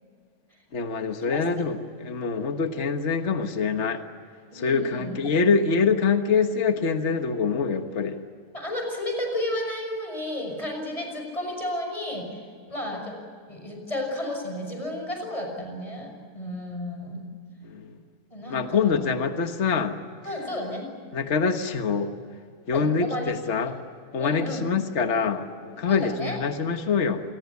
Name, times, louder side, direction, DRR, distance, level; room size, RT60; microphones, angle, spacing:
voice 1, 0.7-4.0 4.5-8.2 17.6-17.9 18.5-19.9 21.1-22.1 22.7-23.8 24.1-27.2, left 5 dB, 50° left, 7 dB, 1.6 m, -25 dB
voice 2, 4.5-5.1 8.5-12.4 12.7-13.2 13.5-17.3 18.3-19.1 20.2-20.9 22.7-23.3 23.6-23.7 24.2-24.7 25.9-26.4, left 1 dB, 20° left, 3 dB, 6.0 m, -32 dB
27.0 x 21.5 x 8.3 m, 2.2 s
omnidirectional pair, 1.6 m